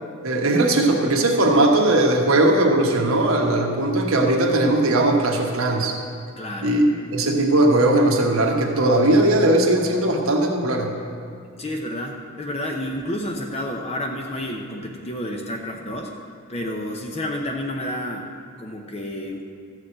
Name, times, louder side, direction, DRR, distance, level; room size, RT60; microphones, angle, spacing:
voice 1, 0.2-6.0 6.6-10.9, right 1 dB, 75° right, 0 dB, 1.2 m, -19 dB
voice 2, 6.4-6.8 11.6-16.1 16.5-18.3 18.6-19.4, left 1 dB, 30° left, 1 dB, 0.8 m, -30 dB
14.0 x 4.9 x 8.6 m, 2.3 s
head